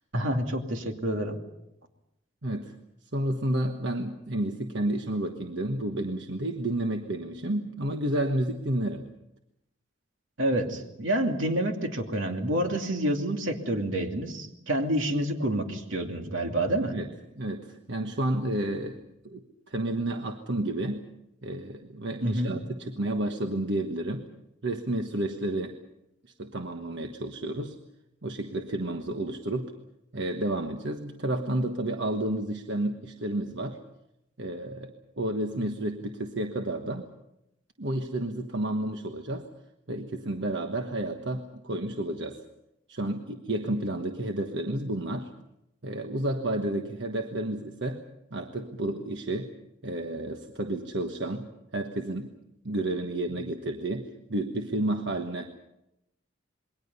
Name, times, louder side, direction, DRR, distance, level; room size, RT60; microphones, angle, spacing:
voice 1, 0.1-1.4 10.4-16.9 22.2-22.5, right 1 dB, 80° right, 4 dB, 2.7 m, -28 dB
voice 2, 2.4-2.7 3.1-9.1 10.5-10.6 16.9-17.1 17.4-21.0 21.4-24.3 24.6-25.8 26.2-27.8 28.2-29.7 30.1-33.8 34.4-37.1 37.8-39.5 39.9-42.4 42.9-45.3 45.8-48.0 48.3-49.5 49.8-51.5 51.7-52.3 52.6-55.5, right 1 dB, 65° right, 5 dB, 1.3 m, -31 dB
27.5 x 22.0 x 5.6 m, 0.85 s
head